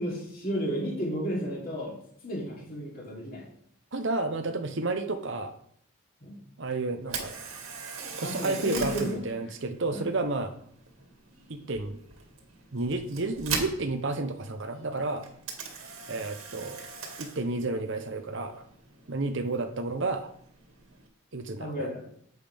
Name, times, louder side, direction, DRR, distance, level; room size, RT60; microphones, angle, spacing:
voice 1, 0.0-2.0 2.2-3.4 6.2-6.4 8.2-9.2 9.9-10.0 21.6-22.1, equal, 40° left, -3 dB, 3.1 m, -33 dB
voice 2, 3.9-5.5 6.6-7.3 8.2-10.5 11.5-12.0 12.7-15.2 16.1-16.9 17.2-18.7 19.1-20.3 21.3-21.9, right 2 dB, 55° right, 7 dB, 0.8 m, -31 dB
Camera, 7.0-21.1, right 5 dB, 75° right, 2.1 m, -41 dB
10.0 x 7.9 x 3.5 m, 0.65 s
head